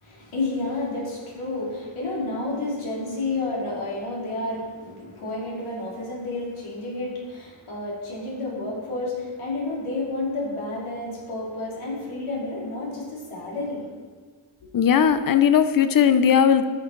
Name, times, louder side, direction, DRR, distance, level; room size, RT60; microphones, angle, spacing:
voice 1, 0.0-13.8, left 2 dB, 85° left, -5 dB, 3.0 m, -30 dB
voice 2, 14.7-16.7, left 8 dB, 45° left, 11 dB, 0.5 m, -18 dB
12.5 x 6.7 x 3.2 m, 1.5 s
wide cardioid pair, 140°, 49 cm